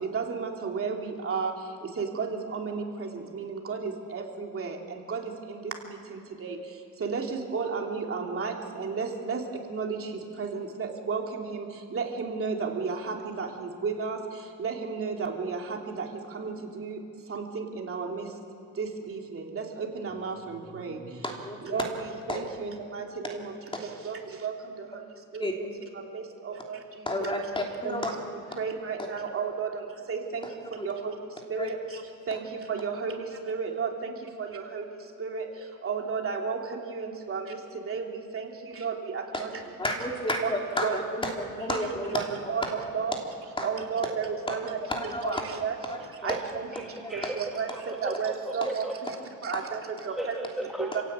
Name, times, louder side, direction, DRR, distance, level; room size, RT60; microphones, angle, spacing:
voice 1, 0.1-1.5 2.0-3.1 3.3-4.8 5.1-5.2 5.5-5.7 6.4-6.6 7.0-9.4 9.7-10.0 10.4-11.6 11.9-14.2 14.6-15.6 16.0-16.1 16.3-17.0 17.3-18.2 18.8-21.0 21.6-21.9 22.3-23.5 24.0-24.5 25.3-25.7 26.1-26.8 27.2-27.3 27.8-28.0 28.6-29.8 30.1-30.4 30.8-31.1 31.5-31.8 32.3-32.4 32.7-34.1 34.4-34.8 35.2-35.5 35.8-37.5 37.9-38.0 38.3-39.5 40.8-41.0 41.7-41.9 42.1-43.2 43.6-44.8 45.2-45.8 46.2-46.7 47.1-47.7 48.0-48.9 49.4-50.3 50.8-51.0, right 5 dB, 40° right, 1 dB, 2.9 m, -32 dB
voice 2, 21.2-21.8 22.3-22.5 25.4-25.5 27.1-28.1 30.8-30.9 31.6-31.7 32.3-32.4 39.3-39.4 39.8-42.2 43.6-43.8 44.5-44.6 44.9-45.4 45.9-46.4 47.0-47.3 49.5-49.6, left 1 dB, 15° left, 1 dB, 3.3 m, -31 dB
voice 3, 46.3-48.9 50.2-51.0, right 1 dB, ahead, 1 dB, 1.8 m, -36 dB
28.0 x 16.5 x 8.8 m, 2.4 s
cardioid pair, 130°, 33 cm